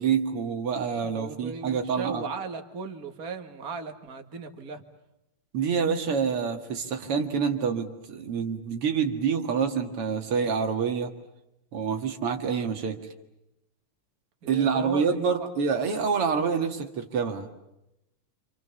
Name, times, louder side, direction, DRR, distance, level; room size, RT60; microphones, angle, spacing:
voice 1, 0.0-2.2 5.5-11.1 11.7-13.0 14.5-17.5, right 6 dB, 85° right, 5 dB, 2.9 m, -27 dB
voice 2, 1.0-4.8 14.4-15.5, right 5 dB, 40° right, 5 dB, 2.3 m, -36 dB
27.5 x 27.5 x 7.0 m, 0.89 s
omnidirectional pair, 2.4 m